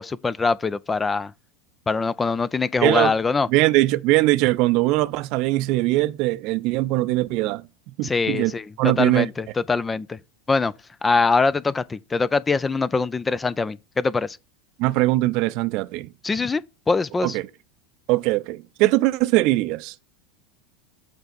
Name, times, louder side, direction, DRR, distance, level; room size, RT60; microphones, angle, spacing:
voice 1, 0.0-1.3 1.9-3.5 8.0-10.2 10.5-10.7 11.0-14.4 16.2-17.4, left 4 dB, 15° left, 0.4 m, -23 dB
voice 2, 2.8-3.1 3.5-7.6 8.0-8.5 8.8-9.3 14.8-16.1 17.2-17.5 18.1-19.9, right 18 dB, 50° right, 0.5 m, -21 dB
7.9 x 3.4 x 6.5 m
figure-of-eight pair, 80°, 0 cm